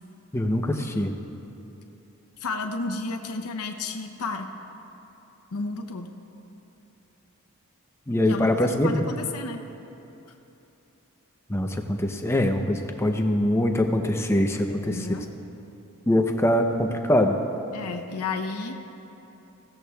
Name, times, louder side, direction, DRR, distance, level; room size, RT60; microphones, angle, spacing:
voice 1, 0.3-1.1 8.1-9.1 11.5-15.0 16.1-17.4, left 1 dB, 10° left, 4 dB, 0.6 m, -23 dB
voice 2, 2.4-4.5 5.5-6.1 8.3-9.6 14.7-15.2 17.7-18.8, left 3 dB, 85° left, 4 dB, 0.7 m, -32 dB
20.0 x 16.0 x 2.3 m, 3.0 s
head